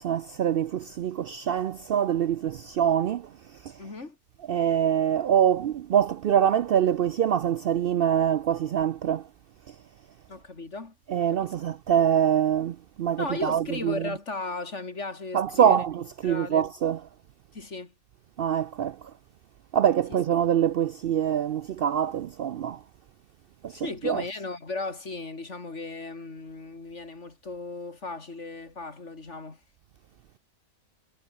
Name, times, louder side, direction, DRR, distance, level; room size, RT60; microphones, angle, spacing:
voice 1, 0.0-3.3 3.6-3.7 4.5-9.2 11.1-14.1 15.3-17.0 18.4-19.0 19.7-22.8 23.6-24.2, right 9 dB, 65° right, 0.6 m, -24 dB
voice 2, 3.8-4.2 10.3-10.9 11.3-11.5 13.2-15.8 16.2-16.7 17.5-17.9 20.1-20.2 23.7-29.6, left 3 dB, 60° left, 3.4 m, -36 dB
omnidirectional pair, 1.4 m